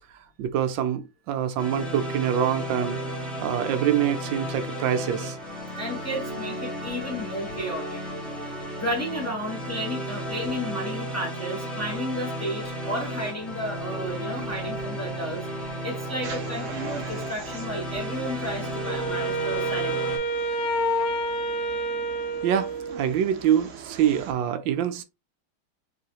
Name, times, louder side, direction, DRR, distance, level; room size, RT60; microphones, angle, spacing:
voice 1, 0.4-5.4 22.4-25.0, right 9 dB, 75° right, 1.2 m, -25 dB
sound 1, 1.6-20.2, right 1 dB, ahead, 0.8 m, -34 dB
voice 2, 5.8-8.0 8.8-15.5 15.8-20.1, equal, 25° left, 0.3 m, -33 dB
sound 2, 16.2-24.3, right 6 dB, 60° right, 0.8 m, -43 dB
Wind instrument woodwind instrument, 18.9-23.2, right 1 dB, 85° left, 1.5 m, -28 dB
3.9 x 3.1 x 2.8 m
omnidirectional pair, 2.3 m